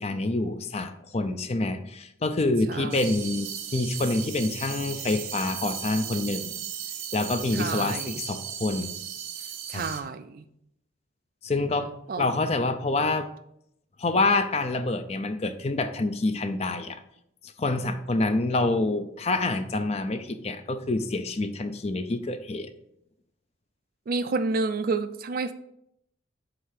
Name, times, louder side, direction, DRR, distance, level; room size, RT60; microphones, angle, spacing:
voice 1, 0.0-6.5 7.1-8.9 9.7-9.9 11.4-11.9 12.2-13.3 14.0-17.0 17.6-22.7, left 2 dB, 30° left, 9 dB, 0.4 m, -27 dB
voice 2, 2.7-3.0 7.5-8.2 9.7-10.4 12.1-12.4 24.1-25.5, right 4 dB, 45° right, 12 dB, 0.4 m, -29 dB
sound 1, 2.9-10.0, right 9 dB, 90° right, 0.7 m, -36 dB
7.8 x 2.8 x 5.8 m, 0.76 s
head